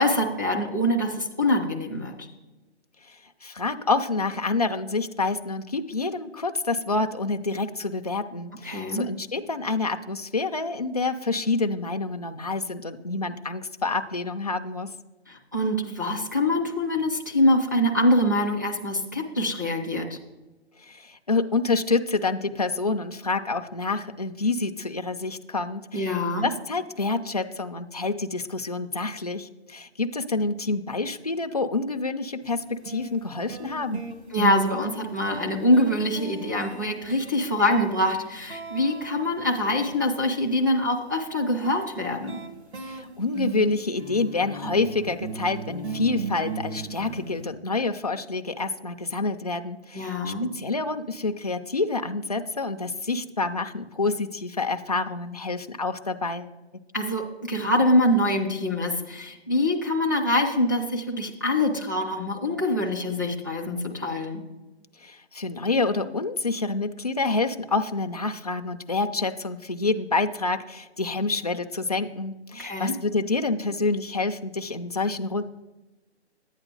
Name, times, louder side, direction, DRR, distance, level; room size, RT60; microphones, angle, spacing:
voice 1, 0.0-2.3 8.6-9.1 15.3-20.2 25.9-26.5 34.3-42.4 49.9-50.5 56.9-64.4 72.6-72.9, left 1 dB, 20° right, -4 dB, 0.5 m, -24 dB
voice 2, 3.0-14.9 20.8-26.2 26.4-34.0 42.8-56.5 65.0-75.4, left 3 dB, 35° left, 6 dB, 0.4 m, -28 dB
sound 1, 32.4-32.5 32.9-40.1 41.6-47.5, right 4 dB, 65° right, 1.7 m, -36 dB
11.0 x 8.9 x 3.8 m, 1.1 s
hypercardioid pair, 170°, 34 cm